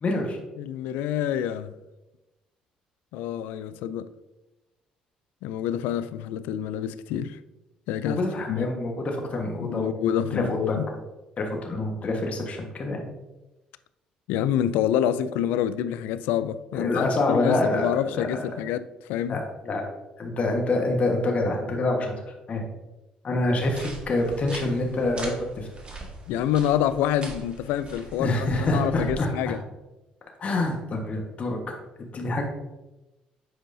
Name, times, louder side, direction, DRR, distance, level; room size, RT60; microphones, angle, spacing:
voice 1, 0.0-0.4 8.0-9.9 10.3-10.8 11.4-13.0 16.7-18.4 19.3-19.8 20.2-22.1 22.5-22.6 23.2-25.7 28.2-29.3 30.4-31.6 32.1-32.4, left 2 dB, 45° left, 1.3 m, -26 dB
voice 2, 0.6-1.7 3.1-4.1 5.4-7.4 7.9-8.2 8.5-8.7 9.6-10.9 14.3-19.4 26.3-29.6, left 10 dB, 80° left, 0.3 m, -27 dB
sound 1, 23.6-29.2, right 3 dB, 35° right, 1.5 m, -41 dB
7.9 x 4.8 x 2.6 m
supercardioid pair, 70°, 3 cm